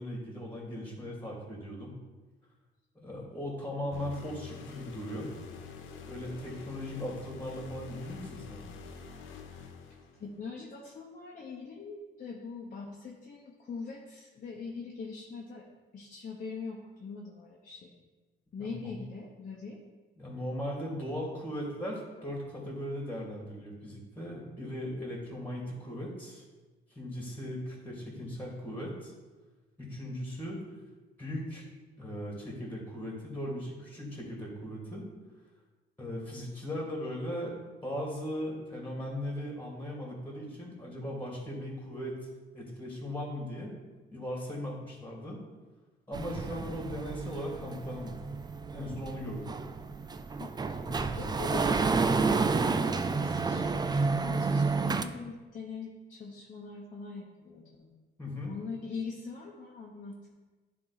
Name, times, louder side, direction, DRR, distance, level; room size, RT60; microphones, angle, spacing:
voice 1, 0.0-2.0 3.0-5.3 6.1-8.6 18.6-18.9 20.2-26.4 26.9-29.1 29.8-30.6 31.2-31.6 32.0-35.1 36.0-37.5 37.8-42.2 42.5-43.7 44.1-45.4 46.1-48.1 48.7-49.5 58.2-58.5, equal, 10° left, -3 dB, 2.3 m, -38 dB
sound 1, 3.9-10.4, left 6 dB, 85° left, 0.8 m, -47 dB
voice 2, 10.2-15.6 15.9-17.9 18.5-19.8 50.4-50.5 50.9-57.9 58.4-60.3, left 4 dB, 40° left, -2 dB, 1.0 m, -42 dB
sound 2, 46.1-55.0, right 4 dB, 20° right, 0.4 m, -30 dB
10.5 x 3.7 x 4.1 m, 1.3 s
cardioid pair, 90°, 20 cm